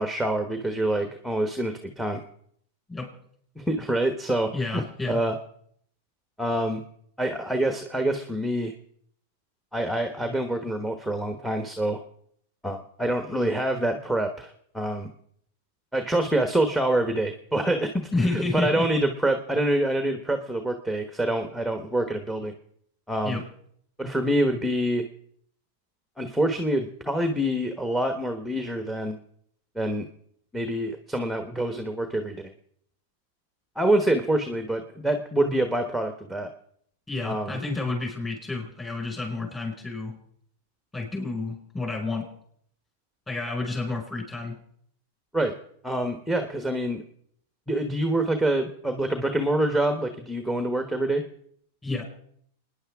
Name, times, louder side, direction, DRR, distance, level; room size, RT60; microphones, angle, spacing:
voice 1, 0.0-2.2 3.6-4.8 5.1-5.4 6.4-6.8 7.2-8.7 9.7-12.0 12.6-15.1 15.9-22.5 23.1-23.4 24.0-25.1 26.2-29.2 29.7-30.1 30.5-32.5 33.8-36.5 37.2-37.6 45.3-45.5 45.8-47.0 47.7-51.2, right 1 dB, ahead, 6 dB, 1.1 m, -26 dB
voice 2, 4.5-5.2 18.1-18.9 23.2-23.4 37.1-40.2 40.9-42.3 43.3-44.6 51.8-52.0, left 3 dB, 15° left, 2 dB, 4.9 m, -30 dB
29.0 x 10.0 x 3.6 m, 0.66 s
hypercardioid pair, 130°, 0 cm